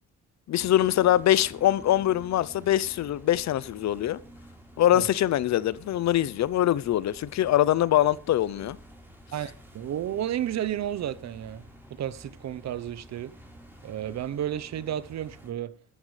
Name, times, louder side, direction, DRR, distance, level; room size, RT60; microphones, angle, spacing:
voice 1, 0.5-4.2 4.8-8.8, left 12 dB, 65° left, 0.7 m, -23 dB
sound 1, 0.6-15.5, equal, 5° right, 4.4 m, -50 dB
voice 2, 9.3-11.6 11.9-13.3 13.8-15.7, right 11 dB, 60° right, 0.9 m, -32 dB
14.0 x 13.0 x 3.3 m
cardioid pair, 90°, 30 cm